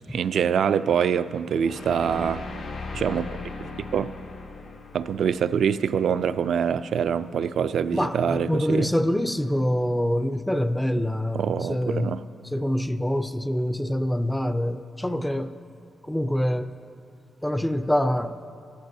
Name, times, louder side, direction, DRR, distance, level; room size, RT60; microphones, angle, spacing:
voice 1, 0.1-2.4 2.9-3.3 3.6-4.1 4.9-8.9 11.3-12.2, right 7 dB, 70° right, 13 dB, 0.3 m, -25 dB
sound 1, 1.6-6.7, left 3 dB, 85° left, 1.5 m, -38 dB
voice 2, 7.9-12.1 12.5-15.5 16.1-16.8 17.4-18.4, left 1 dB, 5° left, 10 dB, 0.4 m, -25 dB
18.0 x 14.5 x 2.7 m, 2.5 s
wide cardioid pair, 140°, 0 cm